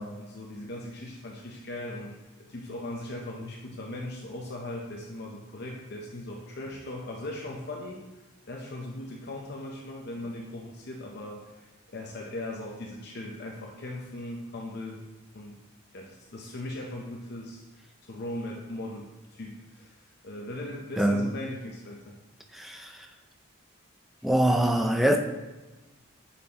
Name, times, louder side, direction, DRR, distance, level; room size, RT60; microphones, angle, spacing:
voice 1, 0.2-8.0 8.4-15.0 15.3-15.6 15.9-17.6 18.1-22.1, left 1 dB, 50° left, -1 dB, 0.6 m, -39 dB
voice 2, 21.0-21.3 22.5-23.1 24.2-25.2, right 1 dB, ahead, 5 dB, 0.3 m, -24 dB
8.4 x 4.1 x 2.8 m, 1.1 s
head